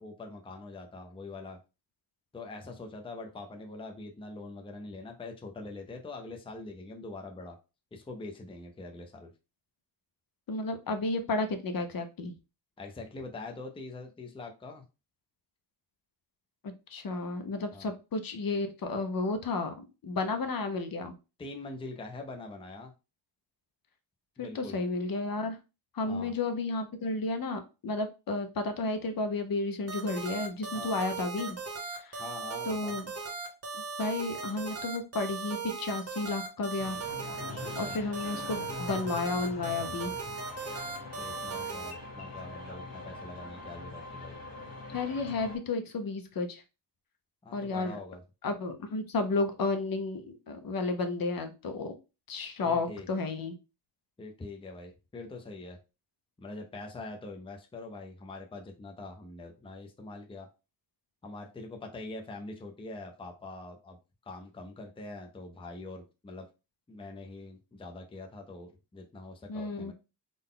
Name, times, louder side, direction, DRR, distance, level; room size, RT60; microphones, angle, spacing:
voice 1, 0.0-1.6 2.3-7.6 7.9-9.3 12.8-14.8 17.7-17.9 21.4-22.9 24.4-24.8 26.1-26.3 30.7-31.0 32.2-33.0 37.7-38.0 41.2-44.4 47.4-48.2 52.6-53.1 54.2-55.8 56.4-60.5 61.2-64.0 64.3-66.5 66.9-69.9, left 2 dB, 15° left, 2 dB, 0.5 m, -44 dB
voice 2, 10.5-12.3 16.6-21.1 24.4-25.6 25.9-31.6 31.9-32.2 32.6-33.1 33.7-37.0 37.8-40.1 44.9-46.6 47.5-48.0 48.4-52.0 52.3-53.5 69.5-69.9, left 3 dB, 55° left, 7 dB, 0.7 m, -32 dB
sound 1, 29.9-41.9, right 4 dB, 35° right, 0.9 m, -38 dB
sound 2, 36.8-45.6, left 2 dB, 35° left, 1.7 m, -43 dB
3.8 x 2.2 x 3.7 m, 0.29 s
wide cardioid pair, 125°, 43 cm